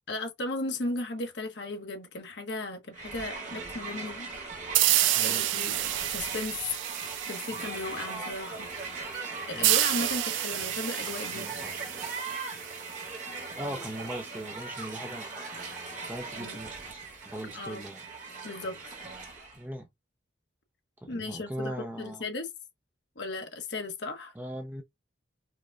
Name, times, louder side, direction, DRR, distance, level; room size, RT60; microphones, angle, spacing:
voice 1, 0.1-4.3 5.2-5.8 6.1-6.6 7.3-8.7 9.5-11.5 16.3-16.6 17.5-17.8 18.4-18.8 21.1-22.5 23.2-24.3, left 2 dB, 65° left, 0.9 m, -36 dB
Crowd, 2.9-19.6, right 4 dB, 40° right, 1.2 m, -39 dB
sound 1, 4.7-8.1 9.6-13.1, right 14 dB, 75° right, 0.4 m, -29 dB
voice 2, 5.1-5.4 7.5-7.6 9.5-9.8 11.3-11.7 13.6-15.5 16.1-18.0 19.5-19.9 21.0-22.2 24.3-24.8, right 1 dB, 10° right, 0.5 m, -39 dB
4.9 x 2.2 x 2.4 m
head